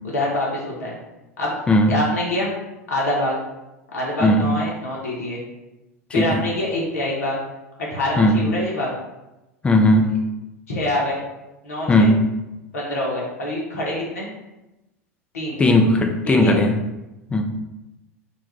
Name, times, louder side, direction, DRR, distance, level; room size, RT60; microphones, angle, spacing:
voice 1, 0.0-1.0 1.4-1.5 1.9-2.5 2.9-3.3 3.9-5.4 6.1-7.4 7.9-8.9 10.7-11.2 11.6-12.1 12.7-14.3 15.3-15.6 16.3-16.6, left 1 dB, 70° left, -4 dB, 0.7 m, -25 dB
voice 2, 9.6-10.1 11.9-12.2 15.6-16.8 17.3-17.4, left 1 dB, 15° left, 3 dB, 0.3 m, -16 dB
2.2 x 2.2 x 2.9 m, 0.98 s
figure-of-eight pair, 85°, 8 cm